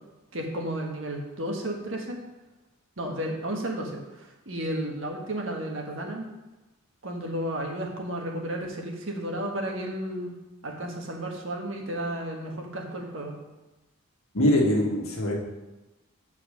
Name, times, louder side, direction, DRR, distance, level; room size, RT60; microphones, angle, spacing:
voice 1, 0.3-2.2 3.0-6.3 7.0-10.3 10.6-13.3, right 1 dB, 60° right, 1 dB, 1.5 m, -33 dB
voice 2, 14.3-15.3, left 1 dB, 75° left, -1 dB, 1.6 m, -22 dB
8.2 x 4.6 x 6.5 m, 1.1 s
head